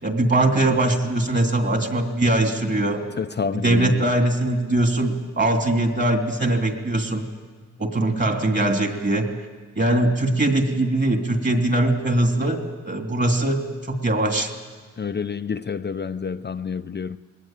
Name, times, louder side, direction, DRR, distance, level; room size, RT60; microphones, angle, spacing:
voice 1, 0.0-3.0 3.6-7.2 7.8-9.3 9.8-14.5, right 1 dB, 35° right, 3.1 m, -21 dB
voice 2, 3.2-4.1 15.0-17.2, left 6 dB, 35° left, 0.6 m, -28 dB
21.5 x 19.0 x 9.1 m
cardioid pair, 80°, 30 cm